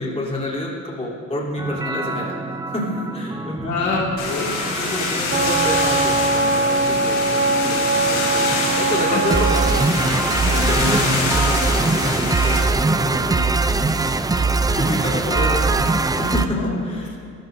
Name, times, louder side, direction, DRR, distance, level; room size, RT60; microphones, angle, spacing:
voice 1, 0.0-3.9 4.6-17.2, left 1 dB, 20° left, -5 dB, 3.4 m, -28 dB
sound 1, 1.6-16.5, right 3 dB, 15° right, 0.4 m, -23 dB
voice 2, 3.6-4.6 8.9-9.2 9.9-10.7 16.5-16.7, left 4 dB, 70° left, -3 dB, 2.3 m, -27 dB
sound 2, 4.2-12.6, left 4 dB, 90° left, 3.5 m, -25 dB
Wind instrument woodwind instrument, 5.3-9.9, right 3 dB, 40° right, 1.5 m, -21 dB
19.0 x 13.5 x 2.7 m, 2.3 s
cardioid pair, 90°, 30 cm